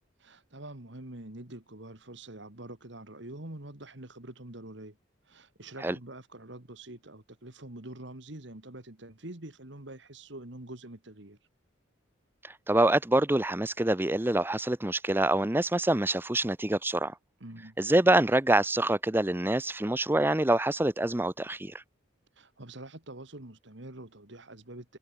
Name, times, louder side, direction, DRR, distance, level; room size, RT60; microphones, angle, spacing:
voice 1, 0.2-5.0 5.3-11.4 17.4-17.8 22.4-25.0, right 1 dB, 60° right, 2.4 m, -45 dB
voice 2, 12.4-17.1 17.8-21.8, right 1 dB, 10° right, 0.6 m, -26 dB
head